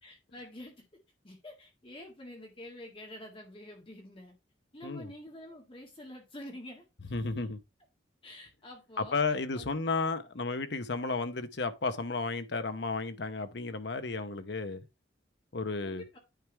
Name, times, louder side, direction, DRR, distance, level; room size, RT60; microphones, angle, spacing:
voice 1, 0.0-0.8 1.2-4.3 4.7-6.8 8.2-9.2 9.5-9.7 15.8-16.2, left 1 dB, 30° left, 1.7 m, -47 dB
voice 2, 7.1-7.6 9.0-14.8 15.5-16.0, left 3 dB, 65° left, 0.8 m, -33 dB
9.4 x 3.5 x 4.5 m
head